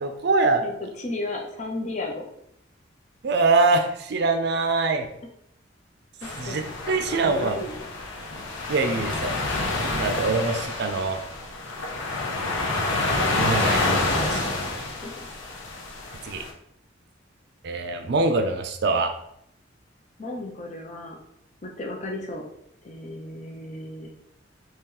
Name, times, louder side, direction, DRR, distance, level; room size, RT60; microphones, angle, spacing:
voice 1, 0.0-0.6 3.2-5.1 6.4-7.6 8.7-11.2 12.8-14.6 16.2-16.4 17.6-19.1, right 3 dB, 60° right, 6 dB, 0.5 m, -24 dB
voice 2, 0.6-2.2 6.4-6.6 7.2-7.7 15.0-15.1 20.2-21.2 21.6-22.4 22.8-24.1, left 2 dB, 40° left, 1 dB, 0.6 m, -34 dB
sound 1, 6.2-16.5, left 2 dB, 85° left, 0.8 m, -28 dB
3.0 x 2.9 x 3.7 m, 0.74 s
head